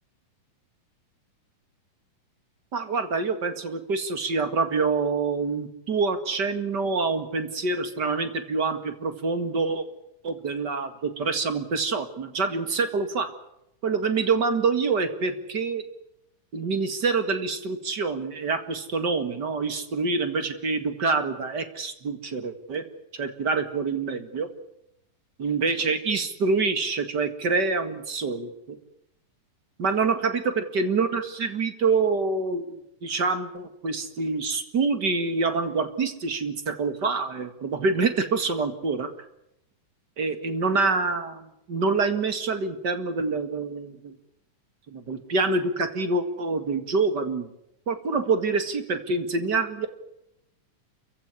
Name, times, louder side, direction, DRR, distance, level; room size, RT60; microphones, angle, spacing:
voice 1, 2.7-9.9 10.2-13.3 13.8-15.8 16.5-22.8 23.1-24.5 25.4-28.8 29.8-39.1 40.2-44.1 44.9-47.5 47.9-49.9, right 4 dB, 35° right, 9 dB, 2.1 m, -26 dB
28.5 x 15.5 x 9.8 m, 0.82 s
omnidirectional pair, 3.8 m